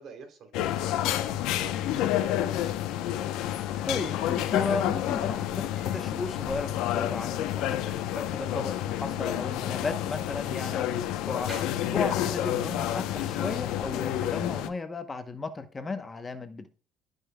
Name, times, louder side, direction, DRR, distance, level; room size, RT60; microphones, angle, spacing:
voice 1, 0.0-2.4 12.7-13.0, right 5 dB, 55° right, 4 dB, 2.9 m, -49 dB
sound 1, 0.5-14.7, left 12 dB, 80° left, 0.7 m, -29 dB
Slam, 3.3-12.6, right 2 dB, 15° right, 3.9 m, -53 dB
voice 2, 3.8-11.5 11.9-16.7, left 3 dB, 20° left, 9 dB, 0.8 m, -35 dB
14.0 x 5.4 x 2.2 m, 0.36 s
cardioid pair, 120°, 0 cm